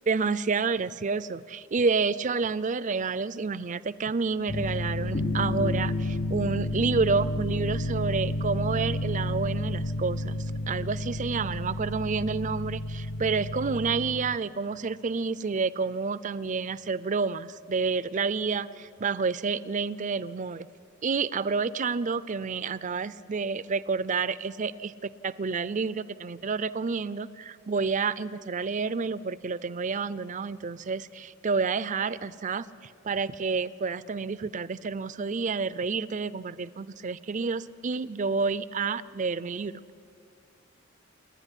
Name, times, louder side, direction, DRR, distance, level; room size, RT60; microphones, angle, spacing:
voice 1, 0.1-20.7 21.0-39.8, right 4 dB, 40° right, 17 dB, 0.5 m, -29 dB
sound 1, 4.5-14.4, left 1 dB, 50° left, 0.7 m, -31 dB
29.5 x 10.5 x 9.9 m, 2.4 s
head